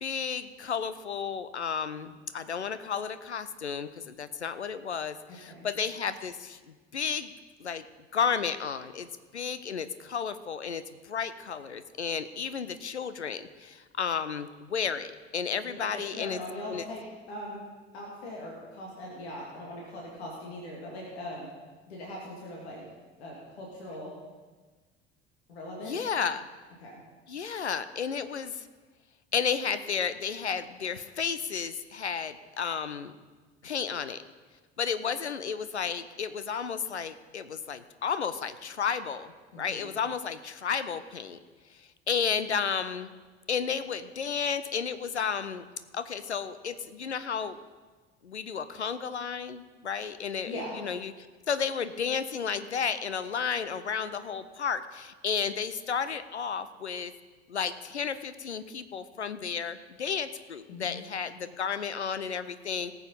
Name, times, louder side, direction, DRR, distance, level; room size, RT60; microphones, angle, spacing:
voice 1, 0.0-7.3 7.6-7.9 8.1-9.1 9.3-16.4 16.7-16.9 25.8-26.5 27.3-28.7 29.3-33.1 33.6-34.2 34.8-41.4 41.7-43.1 43.5-45.6 45.9-47.6 48.2-57.1 57.5-63.0, left 6 dB, 90° left, 13 dB, 0.5 m, -32 dB
voice 2, 5.3-5.7 15.7-17.6 17.9-21.5 21.9-22.8 23.2-24.1 25.5-26.0 26.8-27.0 39.5-39.9 50.4-50.8 60.7-61.0, left 1 dB, 70° left, -3 dB, 2.2 m, -40 dB
18.0 x 7.0 x 5.3 m, 1.4 s
figure-of-eight pair, 60°, 33 cm